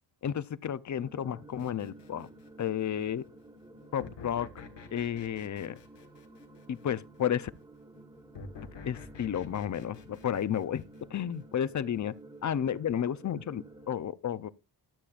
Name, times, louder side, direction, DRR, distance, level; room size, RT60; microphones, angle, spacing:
voice 1, 0.2-2.3 2.6-3.2 3.9-4.6 4.9-5.8 6.7-7.5 8.8-10.8 11.1-12.1 12.4-14.5, left 9 dB, 45° left, 0.4 m, -32 dB
sound 1, 1.0-14.0, right 2 dB, 10° right, 1.2 m, -53 dB
sound 2, 1.6-2.8 4.0-7.0 8.3-11.6, left 5 dB, 85° left, 1.6 m, -49 dB
13.5 x 8.4 x 2.4 m
wide cardioid pair, 180°, 42 cm